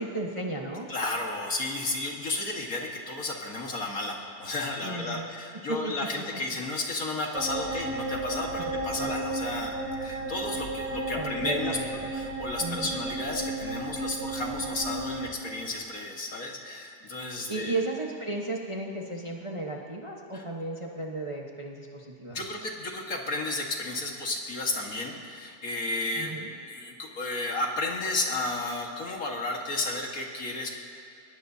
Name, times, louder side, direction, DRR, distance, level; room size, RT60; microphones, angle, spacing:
voice 1, 0.0-0.9 4.8-5.3 5.5-5.9 8.6-8.7 9.0-9.1 11.1-12.1 12.6-13.0 17.5-22.4 26.2-26.5, right 2 dB, 20° right, -1 dB, 1.1 m, -34 dB
voice 2, 0.9-9.7 10.0-17.7 20.3-20.4 22.3-26.3 26.6-30.8, left 2 dB, 60° left, 0 dB, 2.1 m, -33 dB
sound 1, 7.3-15.3, right 2 dB, 60° right, 4.7 m, -33 dB
22.5 x 20.0 x 2.8 m, 2.6 s
omnidirectional pair, 1.7 m